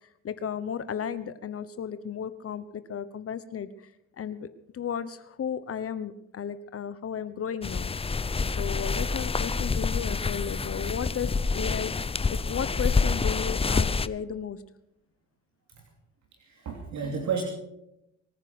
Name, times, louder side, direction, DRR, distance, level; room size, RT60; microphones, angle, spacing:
voice 1, 0.0-3.9 4.2-4.5 4.7-7.9 8.4-11.9 12.3-14.6, left 8 dB, 50° left, 13 dB, 1.0 m, -34 dB
sound 1, 7.6-14.1, left 4 dB, 20° left, 0.6 m, -27 dB
voice 2, 16.4-17.4, right 6 dB, 65° right, 1 dB, 3.1 m, -32 dB
24.0 x 9.8 x 6.1 m, 0.83 s
cardioid pair, 90°, 30 cm